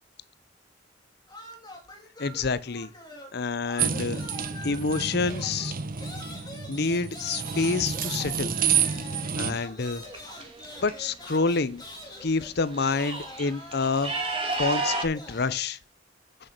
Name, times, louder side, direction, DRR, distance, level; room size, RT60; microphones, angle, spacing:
sound 1, 1.3-3.4 3.6-15.6, left 1 dB, 20° left, 3.0 m, -44 dB
voice 1, 2.2-2.9 3.3-4.2 4.6-5.7 6.7-8.5 9.4-10.0 10.8-11.8 12.2-14.1 14.6-15.8, left 4 dB, 60° left, 0.8 m, -27 dB
sound 2, 3.8-9.5, right 7 dB, 50° right, 1.0 m, -29 dB
sound 3, 9.8-10.9 12.1-12.2 12.5-15.0, right 3 dB, 30° right, 2.4 m, -32 dB
9.5 x 6.5 x 6.0 m
head